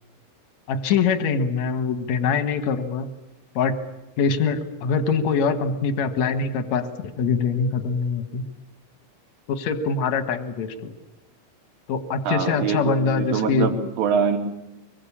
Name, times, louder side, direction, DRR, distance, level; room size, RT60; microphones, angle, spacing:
voice 1, 0.7-3.1 3.6-3.8 4.2-6.9 7.2-8.4 9.5-10.9 11.9-13.7, left 5 dB, 60° left, 9 dB, 1.9 m, -23 dB
voice 2, 12.3-14.4, right 6 dB, 90° right, 4 dB, 5.3 m, -24 dB
25.0 x 23.5 x 8.7 m, 0.96 s
omnidirectional pair, 5.5 m